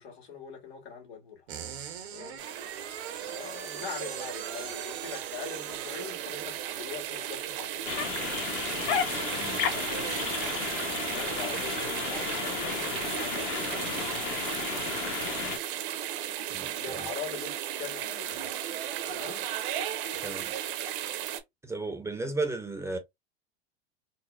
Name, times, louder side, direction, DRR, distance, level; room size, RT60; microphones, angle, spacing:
voice 1, 0.0-1.5 2.1-2.4 3.2-8.3 9.7-10.1 11.0-14.1 16.7-18.5 19.0-19.4, left 6 dB, 85° left, 1.7 m, -42 dB
sound 1, 1.5-11.4, right 8 dB, 80° right, 1.0 m, -44 dB
sound 2, 2.4-21.4, right 11 dB, 55° right, 0.8 m, -35 dB
sound 3, 7.8-15.6, left 8 dB, 40° left, 0.7 m, -33 dB
voice 2, 16.5-17.0 20.2-20.5 21.6-23.0, right 3 dB, 10° right, 0.6 m, -34 dB
3.9 x 2.0 x 2.3 m
hypercardioid pair, 105°, 31 cm